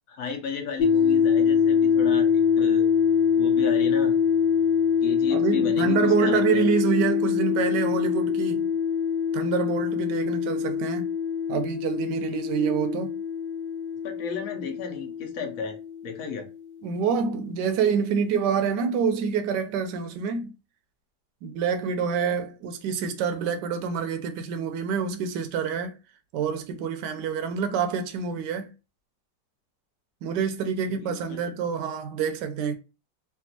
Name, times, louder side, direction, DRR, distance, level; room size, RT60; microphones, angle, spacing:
voice 1, 0.1-2.9 3.4-4.2 5.0-6.6 14.0-16.5 30.9-31.4, left 6 dB, 60° left, 0.9 m, -34 dB
sound 1, 0.8-16.3, left 7 dB, 80° left, 1.4 m, -24 dB
voice 2, 5.3-8.7 9.3-11.1 11.5-13.1 16.8-20.5 21.4-26.0 26.3-28.7 30.2-32.8, right 6 dB, 75° right, 1.2 m, -27 dB
3.4 x 2.5 x 2.7 m
omnidirectional pair, 2.0 m